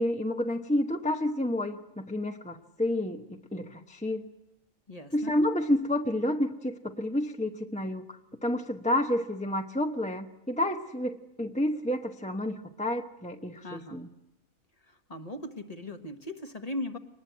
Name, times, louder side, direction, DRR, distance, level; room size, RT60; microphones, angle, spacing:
voice 1, 0.0-4.3 5.1-14.1, left 1 dB, 5° left, 5 dB, 0.8 m, -30 dB
voice 2, 4.9-5.3 13.6-14.0 14.9-17.0, left 1 dB, 30° left, 7 dB, 1.4 m, -38 dB
24.5 x 20.0 x 9.3 m, 0.93 s
omnidirectional pair, 1.4 m